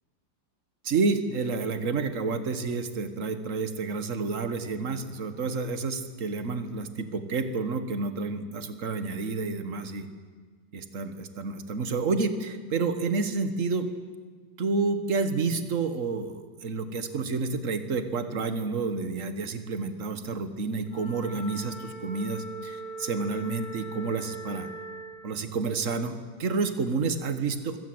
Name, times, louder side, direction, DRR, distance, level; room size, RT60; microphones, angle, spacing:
voice 1, 0.8-10.1 10.7-13.9 14.6-24.7 25.2-27.8, right 4 dB, 45° right, 10 dB, 1.7 m, -29 dB
Wind instrument woodwind instrument, 20.9-25.2, right 2 dB, 50° left, 8.7 m, -40 dB
24.0 x 17.5 x 7.9 m, 1.5 s
omnidirectional pair, 2.0 m